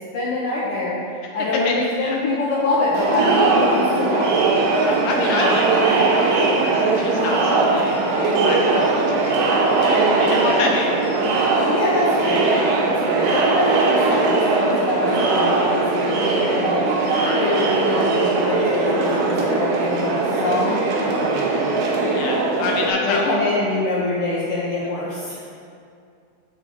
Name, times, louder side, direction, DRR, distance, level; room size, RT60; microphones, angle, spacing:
voice 1, 0.1-1.0 1.3-4.3 11.7-16.8 17.3-20.9 21.2-21.6 23.0-25.4, left 2 dB, 55° left, -10 dB, 2.9 m, -24 dB
Crowd, 2.9-22.9, right 3 dB, 80° right, 3.8 m, -20 dB
voice 2, 4.9-8.0 8.4-11.2 17.2-17.6 22.1-23.3, left 3 dB, 80° left, 0 dB, 2.8 m, -28 dB
9.7 x 7.5 x 4.0 m, 2.4 s
omnidirectional pair, 5.6 m